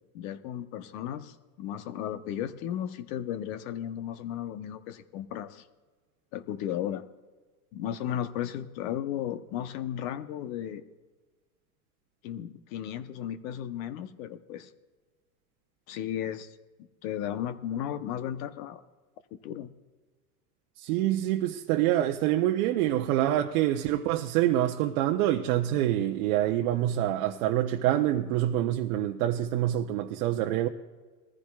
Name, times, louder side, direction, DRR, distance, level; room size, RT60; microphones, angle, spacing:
voice 1, 0.1-5.6 6.3-7.0 7.7-10.8 12.2-14.7 15.9-16.6 17.0-18.8 19.4-19.7, left 10 dB, 55° left, 1.0 m, -35 dB
voice 2, 20.8-30.7, right 13 dB, 60° right, 0.9 m, -26 dB
21.0 x 14.5 x 2.4 m
supercardioid pair, 125°, 48 cm